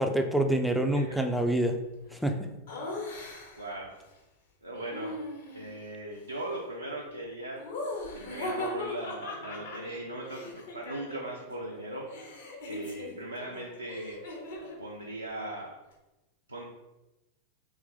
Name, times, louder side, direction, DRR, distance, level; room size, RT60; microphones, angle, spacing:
voice 1, 0.0-1.8 2.2-2.5, right 1 dB, ahead, 5 dB, 0.4 m, -26 dB
Laughter, 2.7-3.7 4.7-5.8 7.6-11.5 11.7-14.8, left 2 dB, 60° left, 1.0 m, -39 dB
voice 2, 3.5-3.9 4.6-5.2 5.5-7.6 8.1-12.1 12.7-14.2 14.8-15.7 16.5-16.7, right 1 dB, 80° right, -2 dB, 0.5 m, -39 dB
3.1 x 3.1 x 3.7 m, 1.0 s
figure-of-eight pair, 90°, 0 cm